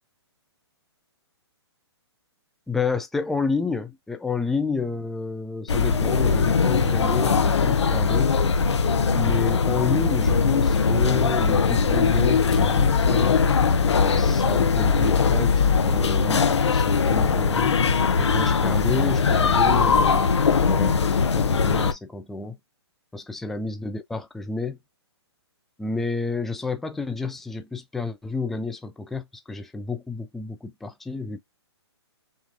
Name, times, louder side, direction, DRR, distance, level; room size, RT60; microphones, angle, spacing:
voice 1, 2.7-8.3 9.1-13.4 14.2-17.8 18.2-20.3 20.6-21.0 21.3-22.6 23.1-24.8 25.8-31.4, left 4 dB, ahead, 0.3 m, -30 dB
sound 1, 5.7-21.9, left 5 dB, 80° left, 0.8 m, -20 dB
5.8 x 2.6 x 2.6 m
hypercardioid pair, 140°, 14 cm